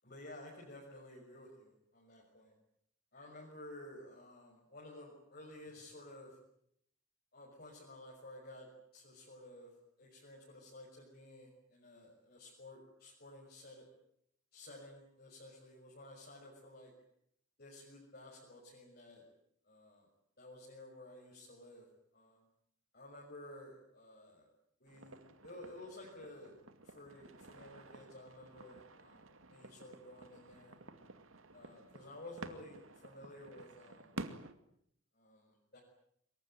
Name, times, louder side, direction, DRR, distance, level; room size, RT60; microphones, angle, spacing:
voice 1, 0.0-2.6 3.1-6.4 7.3-9.7 10.0-13.9 14.5-16.9 17.6-19.2 19.6-20.1 20.4-21.9 22.1-22.4 22.9-24.5 24.8-26.5 26.8-30.7 31.5-34.1 35.1-35.8, left 1 dB, 50° left, -3 dB, 6.4 m, -53 dB
sound 1, 24.9-34.5, right 2 dB, 80° right, 2.4 m, -52 dB
25.5 x 23.0 x 9.2 m, 0.72 s
head